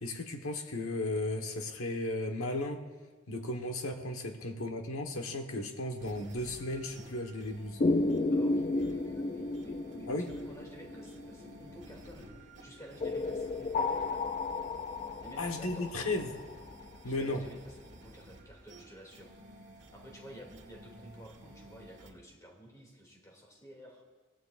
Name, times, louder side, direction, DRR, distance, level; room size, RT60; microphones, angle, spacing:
voice 1, 0.0-2.8 3.3-7.8 10.1-10.3 15.4-16.3 17.0-17.4, left 2 dB, 80° left, 4 dB, 1.3 m, -35 dB
sound 1, 6.0-22.1, right 1 dB, 55° right, 1.5 m, -53 dB
sound 2, 7.8-12.0 13.0-16.8, left 2 dB, 30° left, 0.3 m, -33 dB
voice 2, 8.3-14.3 15.2-16.1 17.0-19.3 19.9-24.0, equal, 15° left, -1 dB, 2.6 m, -52 dB
22.5 x 15.5 x 2.5 m, 1.4 s
head